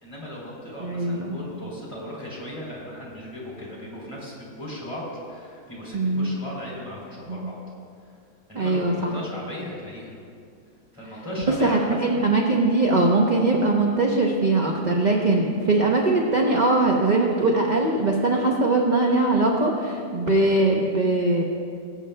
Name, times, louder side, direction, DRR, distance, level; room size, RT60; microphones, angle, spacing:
voice 1, 0.0-7.6 8.5-10.2 10.9-12.0 12.5-12.7, left 1 dB, 20° left, -6 dB, 2.8 m, -37 dB
voice 2, 0.8-1.4 5.9-6.3 7.3-7.5 8.5-9.1 11.6-21.4, right 2 dB, 40° right, 0 dB, 0.7 m, -21 dB
20.5 x 8.2 x 2.2 m, 2.3 s
omnidirectional pair, 1.7 m